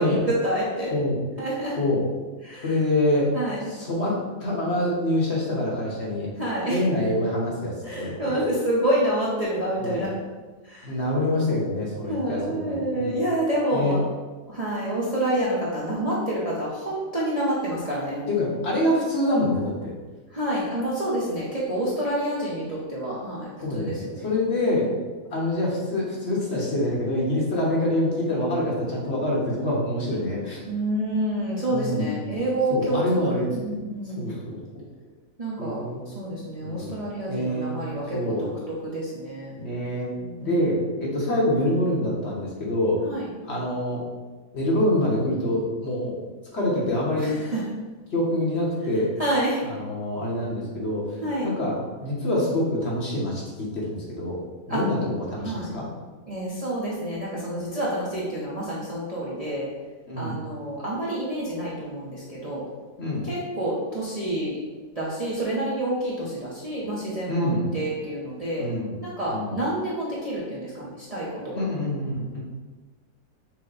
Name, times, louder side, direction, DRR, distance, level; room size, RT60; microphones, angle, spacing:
voice 1, 0.0-0.9 1.4-1.8 2.4-2.8 3.3-3.7 6.4-6.8 7.8-10.1 10.6-11.0 12.1-14.0 14.5-18.3 20.3-24.3 30.7-34.3 35.4-39.5 40.2-40.6 43.0-43.3 47.2-47.6 49.2-49.6 51.2-51.5 54.7-54.8 55.4-55.7 56.3-59.7 60.2-62.6 63.2-64.6 65.0-67.5 67.7-68.7 69.0-71.5, right 1 dB, 30° right, -7 dB, 0.7 m, -28 dB
voice 2, 0.9-1.2 1.8-2.0 2.6-3.3 3.7-6.3 6.7-8.4 9.8-10.0 10.8-13.2 13.7-14.0 18.3-19.9 23.6-24.9 25.3-30.6 31.7-32.2 32.7-33.5 34.2-34.8 35.6-36.0 36.6-37.8 38.1-38.5 39.6-40.1 40.4-43.0 43.4-44.0 44.5-46.2 46.5-47.3 48.1-49.1 49.7-54.4 54.7-55.8 60.1-60.4 63.0-63.3 67.3-67.7 68.6-69.0 69.3-69.5 71.5-72.4, left 1 dB, 50° left, -4 dB, 1.1 m, -26 dB
5.9 x 2.2 x 3.9 m, 1.3 s
omnidirectional pair, 1.6 m